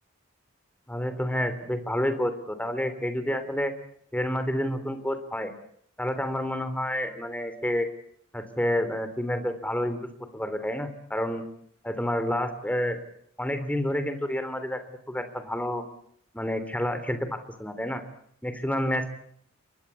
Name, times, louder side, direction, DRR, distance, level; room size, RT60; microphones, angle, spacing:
voice 1, 0.9-3.7 4.1-5.5 6.0-7.9 8.3-11.5 11.8-13.0 13.4-15.8 16.3-18.0 18.4-19.1, equal, 5° left, 10 dB, 3.3 m, -29 dB
28.0 x 23.0 x 8.5 m, 0.68 s
head